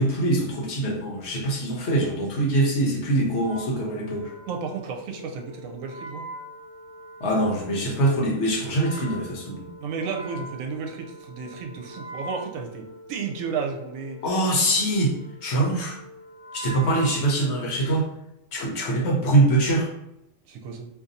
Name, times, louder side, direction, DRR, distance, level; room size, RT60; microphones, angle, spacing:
voice 1, 0.0-4.3 7.2-9.7 14.2-15.1 15.4-16.0 16.5-18.1 18.5-19.9, right 1 dB, 60° left, -1 dB, 0.9 m, -23 dB
Wind instrument woodwind instrument, 3.3-18.0, right 1 dB, 25° left, 1.0 m, -43 dB
voice 2, 4.5-6.3 9.8-14.2 20.5-20.9, right 5 dB, 85° right, 2 dB, 1.0 m, -33 dB
2.6 x 2.6 x 3.9 m, 0.84 s
omnidirectional pair, 1.4 m